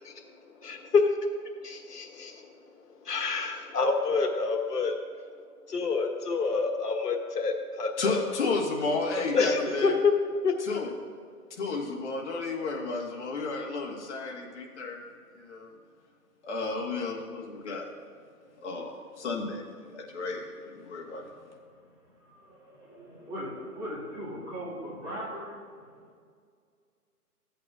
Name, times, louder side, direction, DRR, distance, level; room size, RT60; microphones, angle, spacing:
voice 1, 0.6-1.0 1.6-2.4 3.0-4.9 5.7-8.2 9.1-10.1 10.4-10.8, left 4 dB, 85° left, 4 dB, 1.4 m, -27 dB
voice 2, 8.0-10.0 10.6-10.9 11.6-15.0 15.3-15.7 16.4-17.9 18.6-21.3, left 3 dB, 45° left, -1 dB, 1.5 m, -32 dB
voice 3, 22.2-26.1, equal, 10° right, -9 dB, 2.0 m, -39 dB
15.5 x 8.3 x 2.4 m, 2.1 s
hypercardioid pair, 160°, 46 cm